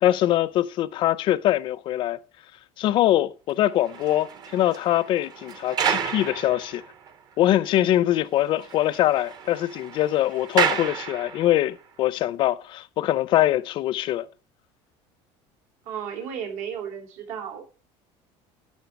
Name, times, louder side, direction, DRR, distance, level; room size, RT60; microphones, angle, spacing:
voice 1, 0.0-2.2 2.8-6.8 7.4-14.3, left 13 dB, 40° left, 0.6 m, -23 dB
sound 1, 3.6-7.1 7.6-7.7 8.1-8.2 8.5-11.7, right 6 dB, 35° right, 0.9 m, -30 dB
voice 2, 15.8-17.6, right 8 dB, 75° right, 3.2 m, -34 dB
11.5 x 6.6 x 5.2 m
cardioid pair, 170°, 12 cm